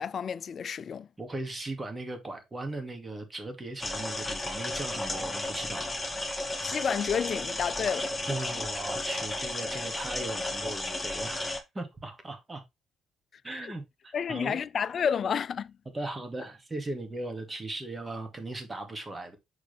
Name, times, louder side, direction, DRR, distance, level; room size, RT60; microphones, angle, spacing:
voice 1, 0.0-1.1 6.6-8.1 13.5-13.7 14.1-15.7, left 7 dB, 50° left, 0.4 m, -30 dB
voice 2, 1.2-5.9 8.3-12.6 13.4-14.6 15.9-19.4, right 2 dB, 25° right, 2.4 m, -38 dB
sound 1, 3.8-11.6, left 2 dB, 15° left, 1.8 m, -33 dB
6.3 x 4.9 x 3.5 m
hypercardioid pair, 45°, 0 cm